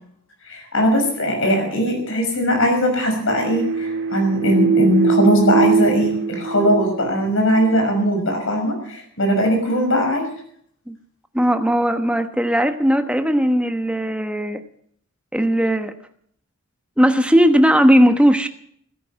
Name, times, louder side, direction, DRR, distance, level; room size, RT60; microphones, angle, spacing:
voice 1, 0.5-10.3, equal, 70° left, 3 dB, 6.0 m, -19 dB
sound 1, 3.3-7.8, right 5 dB, 60° right, 1.8 m, -22 dB
voice 2, 11.3-14.6 15.3-15.9 17.0-18.5, equal, 5° right, 7 dB, 1.1 m, -17 dB
17.0 x 10.5 x 7.5 m, 0.65 s
head